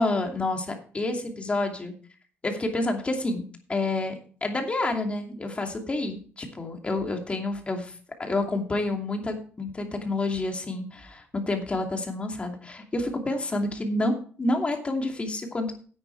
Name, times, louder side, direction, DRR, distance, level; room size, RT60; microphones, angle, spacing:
voice 1, 0.0-1.9 2.4-3.4 3.7-14.1 14.4-15.7, left 2 dB, 25° left, 4 dB, 2.7 m, -28 dB
10.5 x 8.4 x 4.7 m, 0.42 s
cardioid pair, 100°, 4 cm